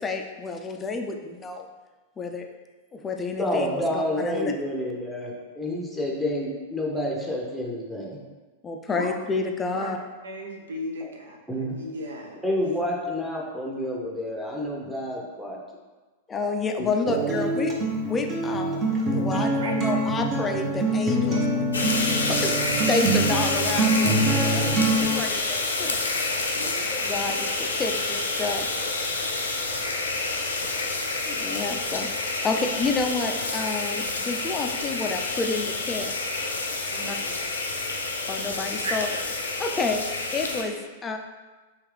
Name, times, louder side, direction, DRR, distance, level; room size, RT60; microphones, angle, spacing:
voice 1, 0.0-1.7 2.2-2.5 2.9-4.5 8.6-10.0 16.3-17.7 18.1-18.8 19.1-22.0 22.3-26.0 26.9-28.7 31.3-32.1 32.4-36.1 37.1-37.2 38.3-39.1 39.6-40.8 41.0-41.2, left 4 dB, 20° left, 4 dB, 0.4 m, -29 dB
voice 2, 3.4-8.2 11.5-11.8 12.4-15.6 16.8-17.3 19.3-19.4, left 1 dB, ahead, -2 dB, 0.8 m, -29 dB
voice 3, 10.2-11.4 11.7-12.4 19.3-19.7 21.2-22.1 26.5-27.4 36.9-37.4 38.8-38.9, right 1 dB, 65° right, 1 dB, 0.7 m, -37 dB
Acoustic guitar, 17.1-25.1, right 2 dB, 30° right, 0.8 m, -25 dB
sound 1, 21.7-40.6, left 3 dB, 75° left, 0.6 m, -28 dB
4.6 x 3.1 x 3.3 m, 1.3 s
figure-of-eight pair, 95°, 0 cm